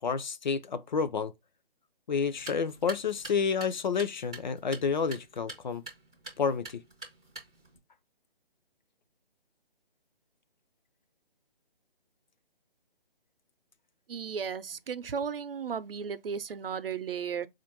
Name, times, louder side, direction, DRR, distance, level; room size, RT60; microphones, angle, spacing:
voice 1, 0.0-1.3 2.1-5.8 6.4-6.8, left 5 dB, 50° left, 0.5 m, -30 dB
sound 1, 2.3-7.8, right 3 dB, 5° right, 0.4 m, -47 dB
voice 2, 14.1-17.5, right 6 dB, 75° right, 0.6 m, -35 dB
4.3 x 2.5 x 2.8 m
figure-of-eight pair, 145°, 29 cm